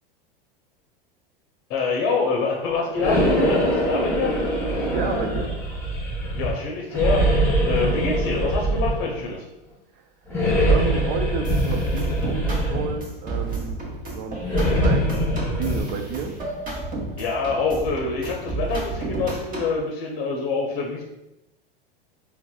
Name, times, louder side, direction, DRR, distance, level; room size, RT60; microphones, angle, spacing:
voice 1, 1.7-4.3 6.4-9.4 17.2-21.0, left 4 dB, 45° left, -1 dB, 0.6 m, -26 dB
sound 1, 2.9-6.5 6.9-9.3 10.3-13.1 14.4-15.8, equal, 10° left, 1.0 m, -23 dB
voice 2, 4.9-5.5 9.9-10.0 10.7-13.8 14.1-14.4 14.8-16.4, right 6 dB, 60° right, 5 dB, 0.5 m, -31 dB
sound 2, 11.4-19.8, right 2 dB, 30° right, 0.9 m, -32 dB
3.9 x 2.0 x 2.3 m, 0.91 s
hypercardioid pair, 105°, 29 cm